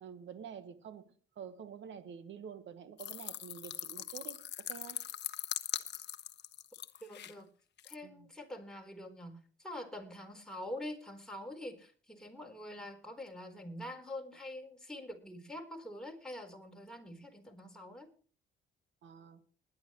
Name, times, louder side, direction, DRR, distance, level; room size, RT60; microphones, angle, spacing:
voice 1, 0.0-5.0 8.0-8.3 19.0-19.4, right 7 dB, 70° right, 1.5 m, -48 dB
sound 1, 3.0-7.3 7.8-7.9, left 10 dB, 60° left, 0.9 m, -41 dB
voice 2, 7.0-7.5 7.8-18.1, left 1 dB, 5° left, 4.1 m, -45 dB
20.5 x 10.5 x 3.2 m
cardioid pair, 90°, 20 cm